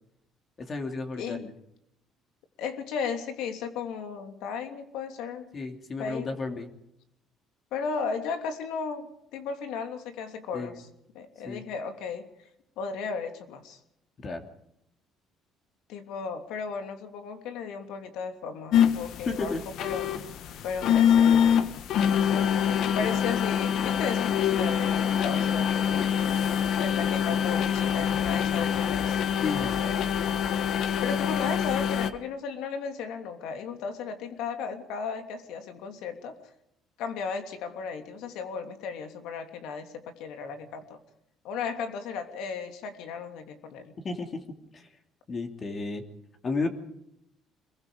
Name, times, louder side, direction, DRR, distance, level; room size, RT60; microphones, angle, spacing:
voice 1, 0.6-1.5 5.5-6.7 10.5-10.8 11.4-11.6 14.2-14.4 19.3-19.6 29.4-29.8 44.0-44.4 44.7-44.9 45.3-46.0 46.4-46.7, left 3 dB, 35° left, 5 dB, 2.8 m, -32 dB
voice 2, 2.6-5.5 6.0-6.3 7.7-10.9 11.1-12.2 12.8-13.8 15.9-20.1 20.6-21.5 22.1-22.5 22.9-26.1 26.7-29.2 29.6-30.2 31.0-36.4 37.0-41.0 41.4-43.9, left 5 dB, 80° left, 6 dB, 3.0 m, -35 dB
sound 1, 18.7-32.1, left 8 dB, 65° left, 1.4 m, -25 dB
26.0 x 22.0 x 5.2 m, 0.79 s
cardioid pair, 135°, 0 cm